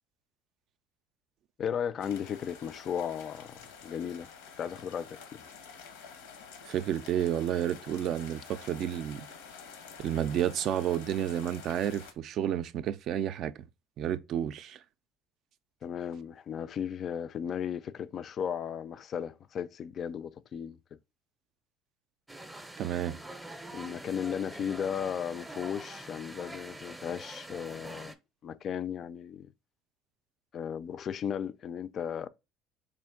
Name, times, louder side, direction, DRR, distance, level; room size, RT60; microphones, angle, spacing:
voice 1, 1.6-4.3 4.6-5.4 15.8-20.8 23.7-28.2 28.4-29.5 30.5-32.3, left 8 dB, 45° left, 0.3 m, -35 dB
sound 1, 2.0-12.1, left 6 dB, 90° left, 0.8 m, -49 dB
voice 2, 6.7-9.3 10.0-13.5 14.0-14.8 22.8-23.2, right 10 dB, 55° right, 0.3 m, -31 dB
sound 2, 22.3-28.1, right 1 dB, 5° right, 0.6 m, -45 dB
3.6 x 2.5 x 3.5 m
supercardioid pair, 100°, 0 cm